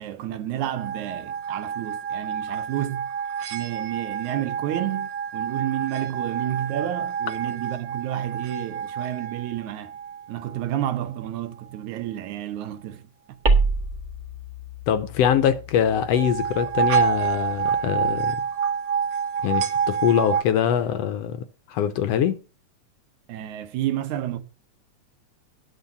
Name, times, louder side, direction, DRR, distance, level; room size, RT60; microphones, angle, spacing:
voice 1, 0.0-3.0 3.5-9.9 10.3-13.0 23.3-24.4, right 12 dB, 90° right, 2.4 m, -30 dB
sound 1, 0.8-10.6 16.0-20.4, right 7 dB, 65° right, 2.0 m, -28 dB
sound 2, 13.4-18.3, right 3 dB, 40° right, 1.1 m, -28 dB
voice 2, 14.9-18.4 19.4-22.4, left 9 dB, 70° left, 1.7 m, -23 dB
9.7 x 6.7 x 5.4 m
omnidirectional pair, 3.3 m